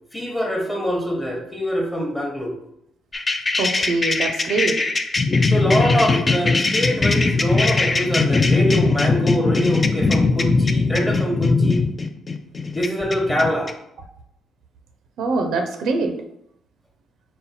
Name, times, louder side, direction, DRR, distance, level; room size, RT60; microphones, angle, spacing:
voice 1, 0.1-2.5 5.5-11.9 12.7-13.7, equal, 10° left, 1 dB, 0.9 m, -24 dB
sound 1, 3.1-13.7, left 3 dB, 30° left, 0.3 m, -20 dB
voice 2, 3.6-4.8 15.2-16.2, right 3 dB, 75° right, 5 dB, 0.5 m, -23 dB
4.1 x 2.2 x 4.1 m, 0.76 s
cardioid pair, 90°, 0 cm